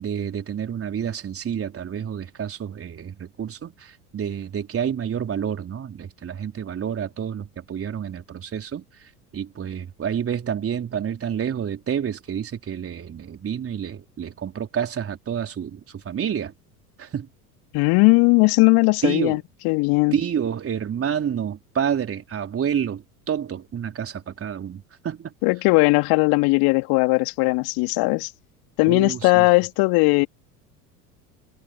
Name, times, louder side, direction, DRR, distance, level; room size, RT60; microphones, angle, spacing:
voice 1, 0.0-16.5 17.0-17.3 19.0-19.4 20.1-25.3 28.9-29.5, right 8 dB, 30° right, 4.4 m, -29 dB
voice 2, 17.7-20.1 25.4-28.3 28.8-30.3, left 28 dB, 50° left, 2.7 m, -18 dB
figure-of-eight pair, 75°, 47 cm